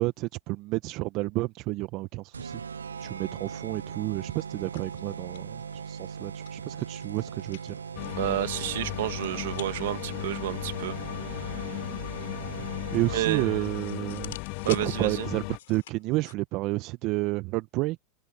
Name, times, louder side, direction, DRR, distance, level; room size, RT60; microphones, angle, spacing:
voice 1, 0.0-2.6 3.0-7.8 12.5-14.4 14.7-18.0, right 21 dB, 50° right, 1.1 m, -30 dB
sound 1, 2.3-13.7, right 6 dB, 90° right, 1.1 m, -40 dB
sound 2, 4.2-16.3, left 13 dB, 70° left, 7.3 m, -50 dB
sound 3, 7.9-15.6, left 26 dB, 55° left, 2.6 m, -36 dB
voice 2, 8.2-11.0 11.2-11.8 13.1-13.7 14.6-15.3, right 15 dB, 70° right, 2.3 m, -31 dB
open air
hypercardioid pair, 95°, 0 cm